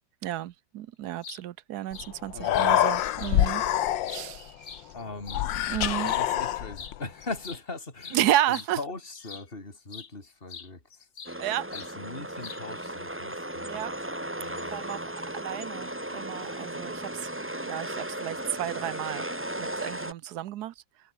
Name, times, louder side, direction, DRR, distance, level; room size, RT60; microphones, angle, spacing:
voice 1, 0.2-3.6 4.1-4.5 5.7-6.1 8.1-8.8 11.4-11.6 13.6-13.9 14.7-15.0 15.3-17.3 17.7-19.2 19.6-20.7, right 13 dB, 70° right, 1.1 m, -31 dB
sound 1, 1.0-1.4 1.9-2.1 2.5-2.7 3.2-3.4 3.8-5.4 6.0-6.3 6.7-7.0 7.2-9.5 9.9-10.1 10.5-11.4 11.7-11.9 12.4-12.8, left 6 dB, 45° left, 1.8 m, -43 dB
Human voice, 1.9-2.0 2.3-4.4 5.3-7.0, left 12 dB, 75° left, 1.6 m, -26 dB
voice 2, 2.3-2.9 4.9-5.5 6.0-11.1 11.7-13.8 14.4-14.8, left 3 dB, 30° left, 4.1 m, -40 dB
sound 2, 11.3-20.1, right 1 dB, 5° right, 1.7 m, -36 dB
omnidirectional pair, 2.0 m